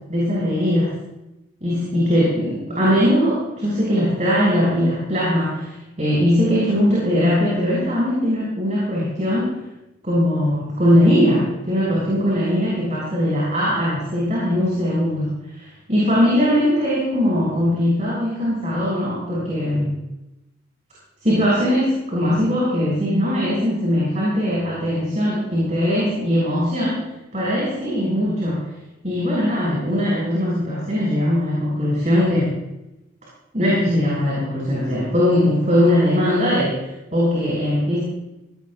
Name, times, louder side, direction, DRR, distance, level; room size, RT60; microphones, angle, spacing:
voice 1, 0.1-0.9 1.6-9.6 10.0-19.9 21.2-27.1 27.3-28.6 29.0-32.5 33.5-36.8 37.1-38.0, equal, 35° right, -7 dB, 6.9 m, -20 dB
20.0 x 19.0 x 2.6 m, 0.93 s
head